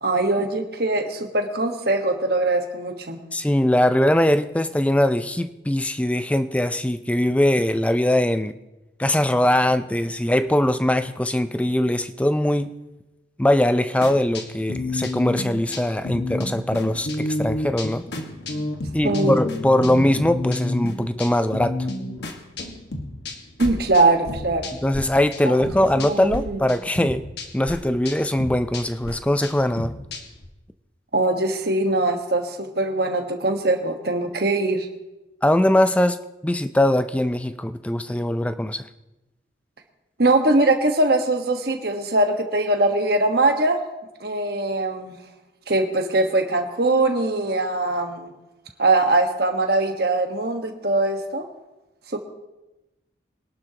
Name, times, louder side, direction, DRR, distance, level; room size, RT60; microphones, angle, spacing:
voice 1, 0.0-3.2 19.0-19.4 23.6-24.7 25.5-26.6 31.1-34.9 40.2-43.8 44.2-45.1 45.7-48.3 48.8-51.4 52.1-52.2, right 2 dB, 55° right, 4 dB, 1.4 m, -22 dB
voice 2, 3.3-8.5 9.0-12.7 13.4-18.0 18.9-21.8 24.8-27.2 27.5-29.9 35.4-38.8, left 1 dB, 5° left, 11 dB, 0.4 m, -21 dB
sound 1, 14.0-25.0 25.3-26.4 26.7-30.5, left 1 dB, 60° left, 1.5 m, -30 dB
23.5 x 11.5 x 2.9 m, 1.0 s
head